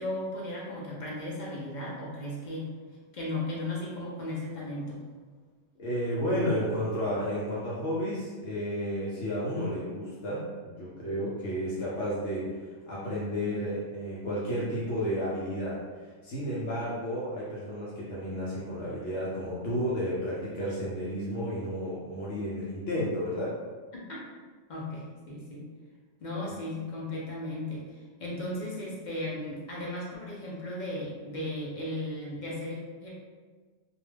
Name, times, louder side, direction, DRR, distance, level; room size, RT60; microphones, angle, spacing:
voice 1, 0.0-2.7 3.1-5.0 23.9-24.2 24.7-25.6 26.2-27.9 28.2-33.1, left 1 dB, 50° left, -5 dB, 0.6 m, -36 dB
voice 2, 5.8-15.8 16.2-23.5 26.5-26.6, equal, 70° left, -7 dB, 0.9 m, -32 dB
2.3 x 2.3 x 3.2 m, 1.4 s
omnidirectional pair, 1.3 m